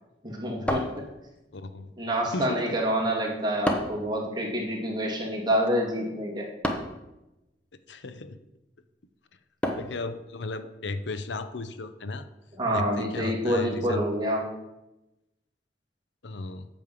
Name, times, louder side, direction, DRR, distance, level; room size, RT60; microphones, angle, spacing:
voice 1, 0.2-1.1 2.0-6.5 12.5-14.5, equal, 25° right, -2 dB, 2.0 m, -27 dB
sound 1, 0.7-1.6 3.6-4.1 6.6-7.0 9.6-10.1, equal, 5° left, 0.9 m, -30 dB
voice 2, 1.5-1.9 2.3-2.8 7.9-8.4 9.7-12.3 12.7-14.0 16.2-16.7, left 2 dB, 85° left, 11 dB, 0.7 m, -35 dB
8.4 x 5.3 x 7.3 m, 0.96 s
head